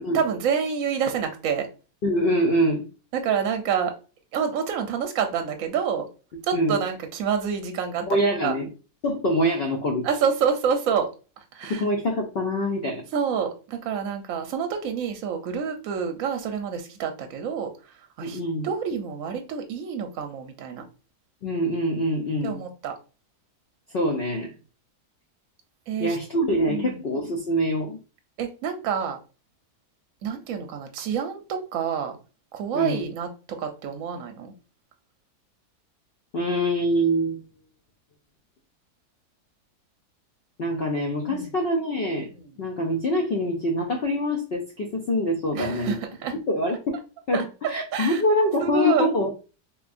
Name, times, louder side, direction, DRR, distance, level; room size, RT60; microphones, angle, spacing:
voice 1, 0.1-1.7 3.1-3.9 4.3-6.1 6.5-8.0 8.4-8.5 10.0-11.1 11.4-11.8 13.1-17.7 18.2-20.8 22.4-22.9 25.9-26.2 26.7-27.0 28.4-29.2 30.2-32.2 32.5-34.5 41.3-41.5 42.4-42.5 45.5-46.3 47.3-48.2 48.6-49.1, right 7 dB, 70° right, 5 dB, 0.9 m, -27 dB
voice 2, 2.0-2.8 6.5-6.8 8.1-8.7 9.0-10.1 11.7-13.0 18.2-18.7 21.4-22.6 23.9-24.5 26.0-28.0 32.7-33.0 36.3-37.4 40.6-42.3 42.6-46.0 46.5-46.9 47.3-49.3, equal, 85° left, 1 dB, 0.5 m, -24 dB
3.6 x 2.9 x 2.5 m, 0.34 s
omnidirectional pair, 1.7 m